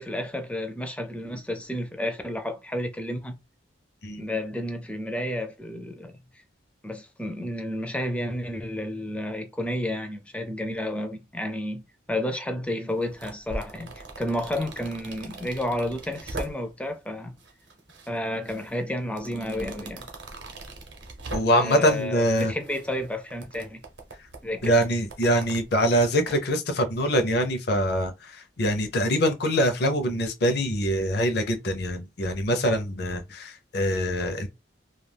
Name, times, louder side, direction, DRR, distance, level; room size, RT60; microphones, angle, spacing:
voice 1, 0.0-3.4 4.2-6.1 6.8-11.8 12.1-17.3 18.1-20.1 21.5-23.8 24.4-24.8, left 1 dB, 5° left, 0.4 m, -31 dB
sound 1, 12.9-16.9 17.4-18.1 18.4-22.1 22.4-26.4, right 2 dB, 70° right, 0.7 m, -41 dB
voice 2, 21.3-22.5 24.6-34.5, equal, 55° left, 0.6 m, -24 dB
2.3 x 2.3 x 3.3 m
head